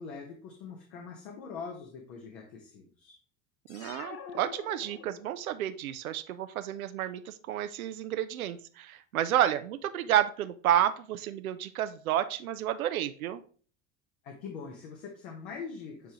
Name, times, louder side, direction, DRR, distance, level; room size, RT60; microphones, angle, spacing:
voice 1, 0.0-3.2 14.2-16.1, left 5 dB, 70° left, 2 dB, 1.3 m, -43 dB
sound 1, 3.7-5.5, left 7 dB, 35° left, 0.8 m, -46 dB
voice 2, 3.7-13.4, right 11 dB, 90° right, 10 dB, 0.5 m, -30 dB
9.1 x 3.5 x 3.0 m, 0.42 s
hypercardioid pair, 80°, 41 cm